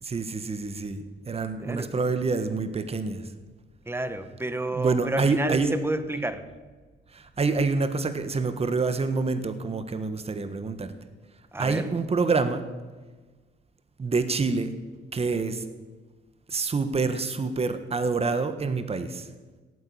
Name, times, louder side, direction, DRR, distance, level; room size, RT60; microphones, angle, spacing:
voice 1, 0.0-3.2 4.7-5.8 7.1-10.9 11.6-12.6 14.0-14.7 15.1-15.6 16.5-19.3, right 4 dB, 30° right, 10 dB, 1.5 m, -27 dB
voice 2, 1.6-1.9 3.9-6.4 11.5-11.9, right 2 dB, 10° right, 11 dB, 1.5 m, -30 dB
16.5 x 9.3 x 8.7 m, 1.3 s
cardioid pair, 90°, 20 cm